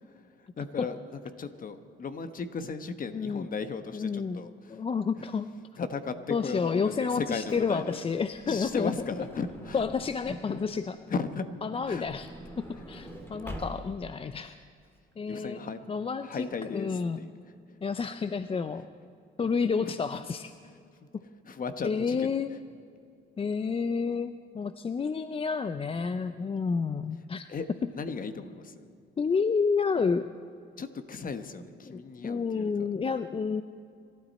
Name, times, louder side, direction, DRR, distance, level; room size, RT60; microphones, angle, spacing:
voice 1, 0.6-4.8 5.2-5.3 5.8-8.0 8.5-9.8 10.3-10.6 11.1-11.5 11.9-12.1 15.3-15.8 16.2-17.3 18.7-18.9 19.8-20.2 21.4-22.3 27.5-27.7 27.9-28.8 30.8-32.9, left 5 dB, 45° left, 10 dB, 1.2 m, -36 dB
voice 2, 3.1-3.5 3.9-5.5 6.3-8.9 9.7-11.0 11.6-12.3 12.6-14.6 15.2-15.6 15.9-17.2 17.8-18.9 19.4-20.5 21.8-22.5 23.4-27.5 29.2-30.3 31.9-33.6, left 5 dB, 30° left, 11 dB, 0.5 m, -30 dB
Truck / Door, 7.4-10.6 11.6-14.2 14.8-14.9 15.1-15.3, equal, 10° left, 2.5 m, -45 dB
26.0 x 12.5 x 4.2 m, 2.4 s
cardioid pair, 90°, 20 cm